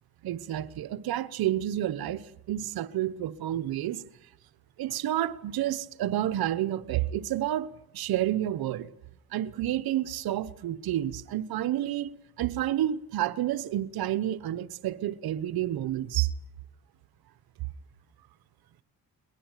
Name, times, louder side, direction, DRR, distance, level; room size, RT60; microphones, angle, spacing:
voice 1, 0.2-4.0 4.8-8.9 9.3-12.1 12.4-16.3, right 12 dB, 80° right, 1.2 m, -30 dB
22.0 x 20.5 x 9.2 m
supercardioid pair, 65°, 36 cm